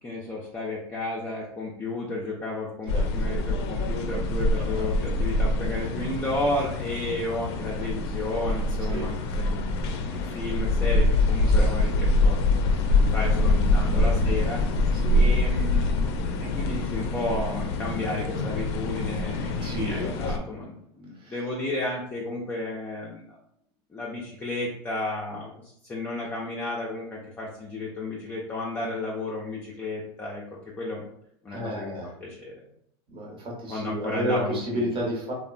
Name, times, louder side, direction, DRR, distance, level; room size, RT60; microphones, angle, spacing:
voice 1, 0.0-12.4 12.9-16.0 16.4-23.4 23.9-30.4 30.8-31.0 31.4-32.6 33.7-34.8, left 2 dB, 15° left, -4 dB, 0.5 m, -33 dB
sound 1, 2.9-20.4, left 2 dB, 70° left, 0.4 m, -25 dB
voice 2, 4.5-4.9 8.9-9.1 11.5-11.7 13.9-14.1 14.9-15.3 17.2-17.4 19.6-20.1 21.1-21.4 31.5-32.1 33.1-35.3, right 1 dB, 35° right, -2 dB, 0.9 m, -32 dB
2.9 x 2.1 x 2.5 m, 0.71 s
supercardioid pair, 120°, 14 cm